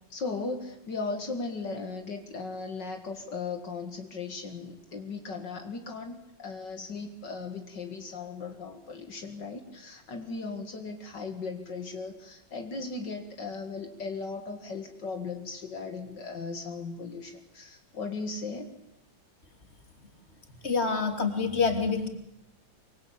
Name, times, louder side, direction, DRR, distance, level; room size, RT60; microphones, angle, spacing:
voice 1, 0.1-18.7, left 4 dB, 70° left, 6 dB, 2.6 m, -37 dB
voice 2, 20.6-22.1, left 4 dB, 35° left, 6 dB, 3.2 m, -26 dB
24.5 x 24.0 x 8.8 m, 0.79 s
omnidirectional pair, 2.0 m